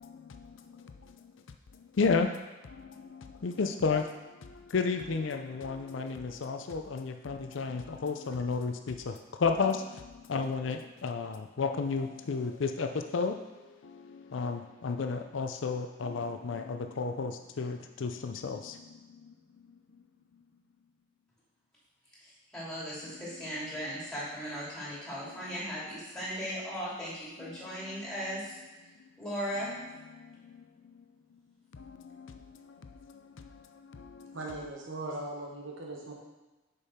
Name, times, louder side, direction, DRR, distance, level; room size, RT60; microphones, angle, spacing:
voice 1, 0.0-20.9 23.0-23.9 24.7-24.9 25.2-26.4 27.4-29.2 29.5-34.7, left 4 dB, 70° left, 6 dB, 0.5 m, -35 dB
voice 2, 22.2-28.5 29.2-29.7, equal, 5° left, -8 dB, 2.5 m, -37 dB
voice 3, 34.3-36.1, right 2 dB, 70° right, -1 dB, 1.4 m, -39 dB
6.9 x 5.4 x 4.3 m, 1.1 s
head